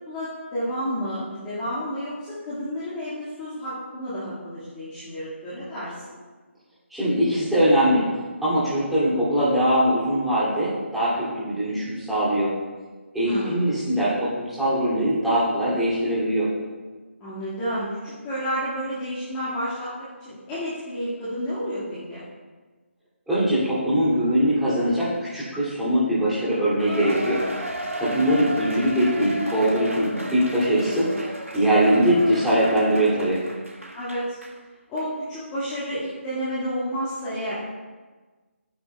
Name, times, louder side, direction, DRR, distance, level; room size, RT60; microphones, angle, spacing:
voice 1, 0.1-6.2 13.2-13.8 17.2-19.9 20.3-22.2 28.1-28.5 33.9-34.4 34.9-37.5, equal, 15° left, -12 dB, 2.0 m, -31 dB
voice 2, 6.9-8.0 8.4-12.5 13.1-16.5 23.3-27.4 27.9-31.1 31.5-33.4, equal, ahead, -12 dB, 2.7 m, -22 dB
Cheering, 26.8-34.6 35.0-35.1 35.7-35.8, right 1 dB, 90° right, 1.5 m, -34 dB
14.5 x 8.6 x 2.3 m, 1.3 s
figure-of-eight pair, 150°, 7 cm